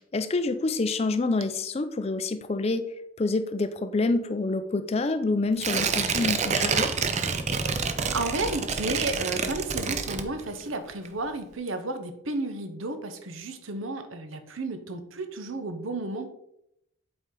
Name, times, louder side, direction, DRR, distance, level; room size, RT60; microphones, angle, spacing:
voice 1, 0.1-2.9 3.2-6.9, left 3 dB, 30° left, 10 dB, 0.4 m, -27 dB
Tearing, 5.6-10.7 11.1-11.2, right 5 dB, 35° right, 0.5 m, -28 dB
voice 2, 8.1-16.3, right 2 dB, 80° right, 8 dB, 0.8 m, -32 dB
7.8 x 4.4 x 3.7 m, 0.79 s
head